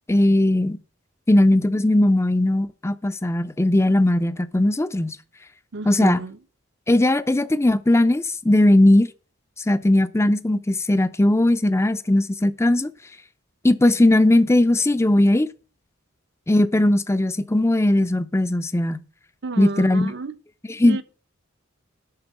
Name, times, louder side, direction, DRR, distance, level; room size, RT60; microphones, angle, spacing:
voice 1, 0.1-0.8 1.3-5.2 5.9-6.2 6.9-9.1 9.7-12.9 13.6-15.5 16.5-19.0 19.6-20.1 20.8-21.0, left 1 dB, 15° left, 0.5 m, -18 dB
voice 2, 5.7-6.4 19.4-20.4 20.9-21.0, right 3 dB, 60° right, 0.8 m, -31 dB
11.5 x 4.5 x 8.0 m
head